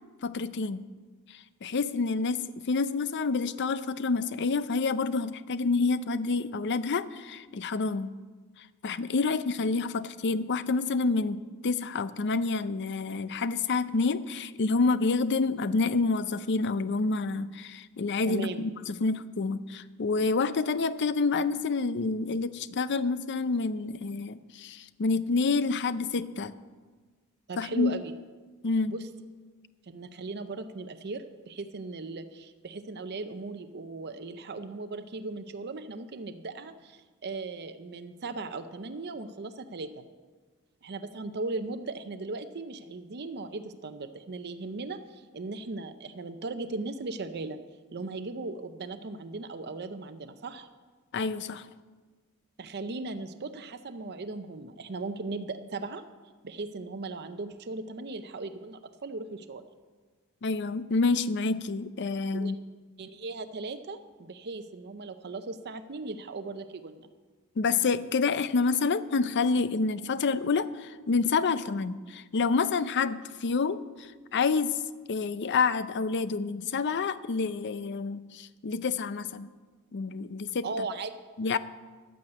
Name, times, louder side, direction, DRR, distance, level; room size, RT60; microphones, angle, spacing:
voice 1, 0.2-0.8 1.3-8.1 8.6-26.5 27.6-27.9 28.6-28.9 51.1-51.7 60.4-62.6 67.6-74.8 75.1-79.5 79.9-80.7 81.4-81.6, left 4 dB, 55° left, 14 dB, 0.5 m, -28 dB
voice 2, 18.3-18.6 27.5-28.1 28.9-29.0 29.9-40.0 40.8-47.6 47.9-50.7 52.6-56.0 56.4-59.6 62.3-62.5 63.0-67.1 80.6-81.1, right 3 dB, 50° right, 9 dB, 0.6 m, -38 dB
11.0 x 8.7 x 8.0 m, 1.4 s
head